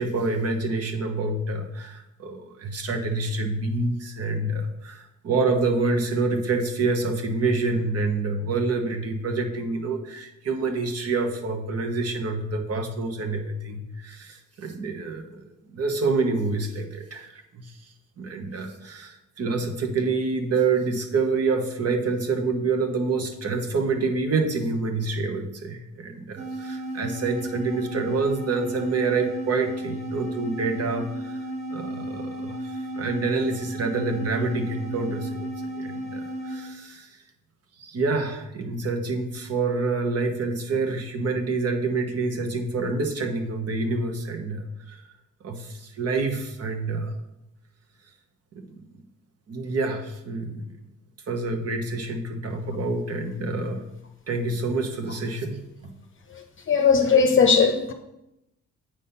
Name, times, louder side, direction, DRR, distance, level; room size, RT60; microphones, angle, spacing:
voice 1, 0.0-17.7 18.2-35.5 35.8-37.2 37.8-45.0 45.4-47.1 48.5-48.9 49.5-50.8 51.3-53.8 54.3-55.9, right 3 dB, 55° right, 1.2 m, -27 dB
sound 1, 26.4-36.8, right 1 dB, 25° right, 1.5 m, -34 dB
voice 2, 56.3-57.9, left 5 dB, 40° left, 0.8 m, -19 dB
8.3 x 4.2 x 5.5 m
cardioid pair, 90°, 30 cm